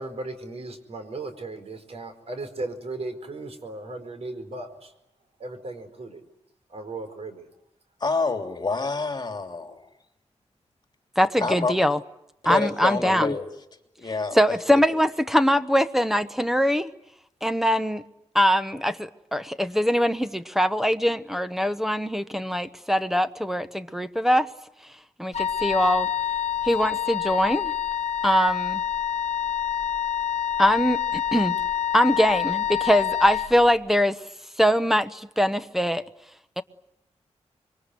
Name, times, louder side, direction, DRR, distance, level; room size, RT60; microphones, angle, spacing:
voice 1, 0.0-4.9 5.4-6.2 6.7-7.4, right 2 dB, 60° right, 4.6 m, -36 dB
voice 2, 8.0-9.8 11.4-11.7 12.4-13.5 14.0-14.4, left 3 dB, 35° left, 3.1 m, -27 dB
voice 3, 11.2-12.0 12.4-13.3 14.3-16.9 17.4-18.0 18.3-24.5 25.2-26.1 26.6-27.7 28.2-28.8 30.6-31.6 31.9-34.2 34.6-36.0 36.6-36.7, equal, 5° right, 1.0 m, -22 dB
Wind instrument woodwind instrument, 25.3-33.5, left 10 dB, 65° left, 1.3 m, -27 dB
26.0 x 23.5 x 9.8 m
wide cardioid pair, 105°, 12 cm